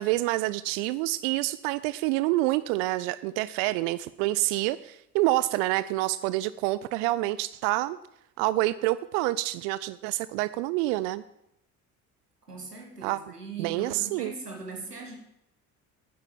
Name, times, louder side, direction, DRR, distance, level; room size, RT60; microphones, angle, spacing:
voice 1, 0.0-8.0 8.4-11.2 13.0-13.2 13.6-14.3, right 17 dB, 55° right, 17 dB, 0.5 m, -27 dB
voice 2, 12.5-15.2, right 3 dB, 90° right, 1 dB, 2.0 m, -40 dB
9.7 x 8.5 x 7.3 m, 0.82 s
figure-of-eight pair, 55°, 46 cm